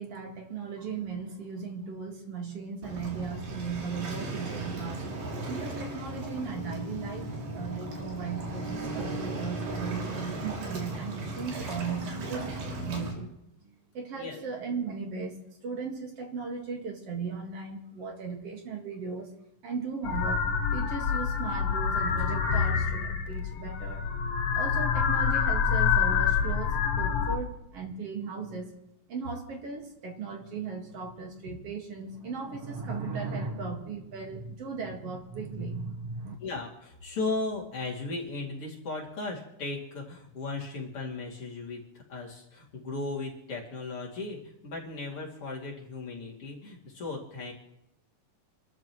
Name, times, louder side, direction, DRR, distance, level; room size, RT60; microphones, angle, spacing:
voice 1, 0.0-5.1 5.5-13.3 13.6-19.3 19.6-20.4 20.7-24.1 24.5-28.7 29.1-36.4, right 5 dB, 50° right, 2 dB, 2.4 m, -37 dB
Waves surf, 2.8-13.1, right 2 dB, 80° right, 4.6 m, -36 dB
sound 1, 20.0-27.4, left 6 dB, 65° left, 1.8 m, -27 dB
voice 2, 36.4-41.8 42.1-47.5, left 3 dB, 45° left, -3 dB, 3.3 m, -36 dB
29.0 x 13.0 x 3.1 m, 0.84 s
omnidirectional pair, 4.0 m